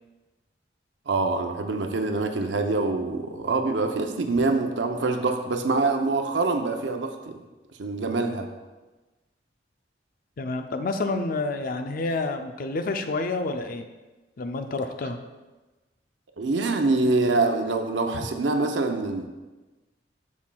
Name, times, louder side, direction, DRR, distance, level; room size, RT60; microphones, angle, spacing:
voice 1, 1.1-7.4 7.8-8.5 16.4-19.3, right 3 dB, 90° right, 5 dB, 0.6 m, -25 dB
voice 2, 10.4-13.9 14.4-15.2, left 3 dB, 50° left, 7 dB, 0.5 m, -29 dB
7.2 x 6.2 x 2.3 m, 1.2 s
head